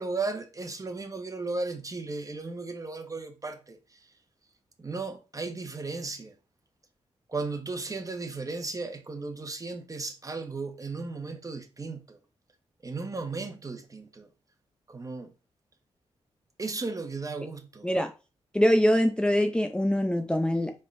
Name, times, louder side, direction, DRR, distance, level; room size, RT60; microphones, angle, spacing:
voice 1, 0.0-4.0 4.8-6.3 7.3-12.2 12.8-14.3 14.9-15.3 16.6-17.9, right 3 dB, 30° right, 1.2 m, -35 dB
voice 2, 18.5-20.7, equal, 10° left, 0.5 m, -23 dB
5.1 x 3.7 x 5.3 m
cardioid pair, 85°, 12 cm